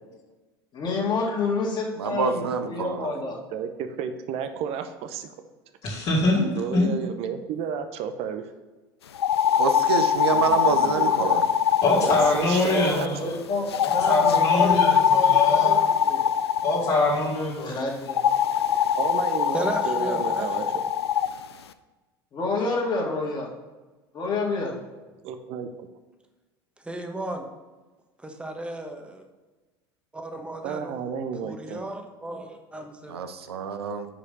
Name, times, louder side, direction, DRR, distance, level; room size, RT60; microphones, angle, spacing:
voice 1, 0.7-2.4 2.7-3.3 12.6-16.3 17.6-18.3 22.3-23.5 24.1-24.7, left 3 dB, 35° left, -2 dB, 2.3 m, -29 dB
voice 2, 2.0-3.1 9.5-11.4 33.1-34.1, right 5 dB, 80° right, 8 dB, 0.6 m, -26 dB
voice 3, 3.5-5.3 6.5-8.5 10.3-11.4 11.9-13.2 19.0-20.7 25.2-25.7 30.6-31.8, right 7 dB, 50° right, 8 dB, 0.8 m, -32 dB
voice 4, 5.8-6.4 6.7-6.9 11.8-13.4 13.8-15.8 16.6-17.8, left 2 dB, 50° left, -7 dB, 2.4 m, -24 dB
sound 1, 9.2-13.1 13.7-17.0 18.1-21.3, left 9 dB, 85° left, 0.4 m, -22 dB
voice 5, 19.5-20.7 26.9-27.5 28.2-29.2 30.1-31.1 31.4-33.1, right 1 dB, 10° right, 4 dB, 1.2 m, -34 dB
7.1 x 5.0 x 5.3 m, 1.2 s
hypercardioid pair, 75°, 13 cm